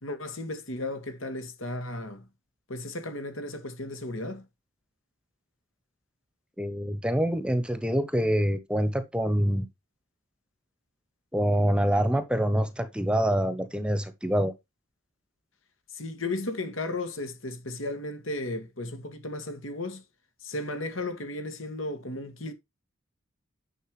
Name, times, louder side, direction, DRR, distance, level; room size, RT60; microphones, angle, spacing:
voice 1, 0.0-2.3 2.7-4.4 15.9-20.0 20.4-22.5, left 2 dB, 85° left, 2.0 m, -35 dB
voice 2, 6.6-9.7 11.3-14.5, equal, 5° right, 0.9 m, -26 dB
10.0 x 6.7 x 3.2 m
head